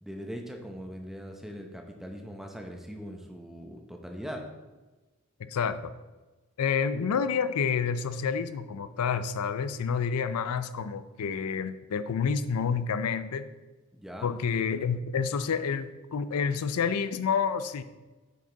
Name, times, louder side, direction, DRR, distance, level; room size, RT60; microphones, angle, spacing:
voice 1, 0.0-4.4 13.9-14.3, equal, ahead, 2 dB, 0.8 m, -41 dB
voice 2, 5.4-5.9 6.6-13.5 14.2-17.8, left 6 dB, 80° left, 12 dB, 0.4 m, -29 dB
9.1 x 5.1 x 3.9 m, 1.2 s
head